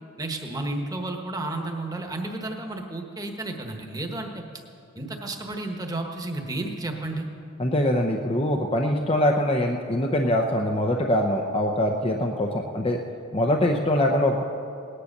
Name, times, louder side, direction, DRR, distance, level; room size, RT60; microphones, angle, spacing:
voice 1, 0.2-4.4 4.9-7.3, right 2 dB, 15° right, 3 dB, 1.2 m, -32 dB
voice 2, 7.6-13.0 13.3-14.4, left 1 dB, 25° left, 2 dB, 0.7 m, -23 dB
19.0 x 10.0 x 6.6 m, 2.7 s
head